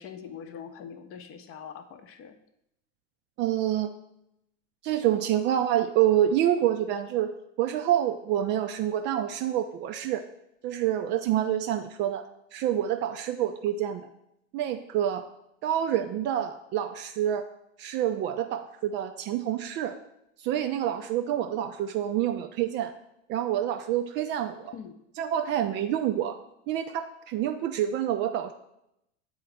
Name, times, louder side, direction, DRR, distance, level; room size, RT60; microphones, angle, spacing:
voice 1, 0.0-2.4 24.7-25.0, left 7 dB, 35° left, 8 dB, 0.7 m, -43 dB
voice 2, 3.4-3.9 4.8-7.3 7.6-10.2 10.6-12.3 12.5-14.1 14.5-15.3 15.6-17.4 17.8-19.9 20.4-22.9 23.3-24.7 25.2-26.4 26.7-28.5, right 11 dB, 30° right, 7 dB, 0.4 m, -27 dB
8.5 x 3.8 x 3.3 m, 0.80 s
figure-of-eight pair, 80°, 38 cm